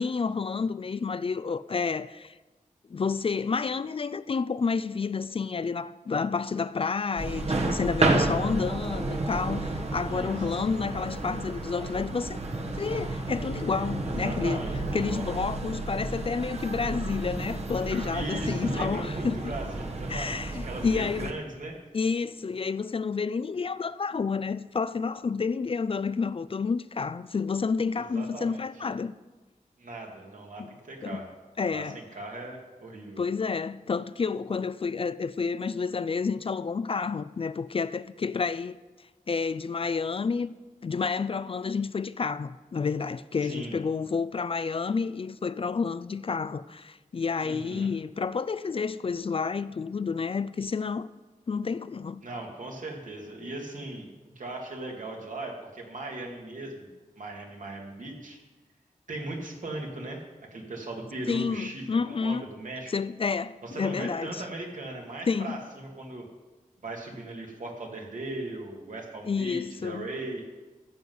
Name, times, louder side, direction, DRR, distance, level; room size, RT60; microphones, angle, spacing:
voice 1, 0.0-2.4 2.9-12.4 12.7-14.6 14.9-19.4 20.1-21.3 21.9-29.1 30.6-30.7 31.0-31.2 31.6-32.0 33.2-38.8 39.3-40.5 40.8-51.1 51.5-52.2 61.3-62.5 62.9-64.4 65.3-65.6 69.3-70.1, left 5 dB, 40° left, 0.4 m, -30 dB
sound 1, 7.2-21.3, right 2 dB, 50° right, 1.3 m, -31 dB
voice 2, 10.0-10.6 14.0-15.2 18.1-21.7 27.9-28.6 29.8-31.3 31.7-33.2 43.4-43.7 47.4-47.9 52.2-56.9 57.2-58.4 59.1-60.2 60.5-62.9 63.6-66.2 66.8-70.4, right 2 dB, 70° right, 2.3 m, -38 dB
14.0 x 7.9 x 5.5 m
wide cardioid pair, 90°, 14 cm